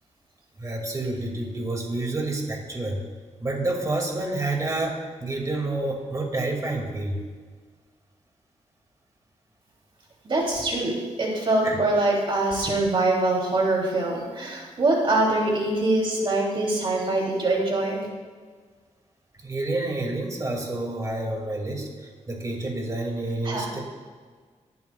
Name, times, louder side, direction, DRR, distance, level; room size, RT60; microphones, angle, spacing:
voice 1, 0.6-3.0 3.4-7.2 11.6-11.8 19.4-21.9 22.3-23.8, right 2 dB, 30° right, 1 dB, 2.3 m, -28 dB
voice 2, 10.2-18.1 23.4-23.6, right 2 dB, 45° right, -2 dB, 3.0 m, -24 dB
19.5 x 11.0 x 2.4 m, 1.5 s
wide cardioid pair, 135°, 12 cm